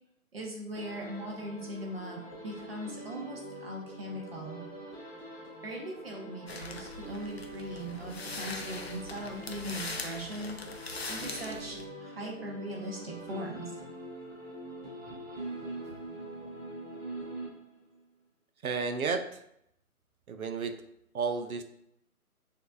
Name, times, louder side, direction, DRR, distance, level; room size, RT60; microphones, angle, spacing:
voice 1, 0.3-4.6 5.6-10.6 11.1-13.7, right 1 dB, 40° right, -1 dB, 1.0 m, -40 dB
sound 1, 0.7-18.0, right 1 dB, 20° right, 1.6 m, -44 dB
sound 2, 6.5-11.8, left 3 dB, 45° left, 0.4 m, -41 dB
voice 2, 18.6-19.4 20.3-20.8 21.1-21.6, right 5 dB, 70° right, 8 dB, 0.6 m, -32 dB
6.3 x 2.8 x 2.3 m, 0.76 s
figure-of-eight pair, 150°, 44 cm